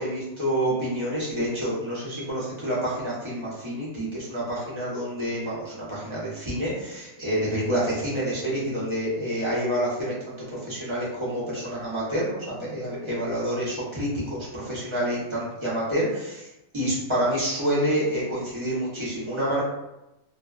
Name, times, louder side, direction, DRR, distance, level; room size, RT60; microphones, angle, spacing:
voice 1, 0.0-16.5 16.7-19.6, right 1 dB, 30° right, -8 dB, 0.8 m, -28 dB
2.6 x 2.2 x 2.3 m, 0.93 s
omnidirectional pair, 1.1 m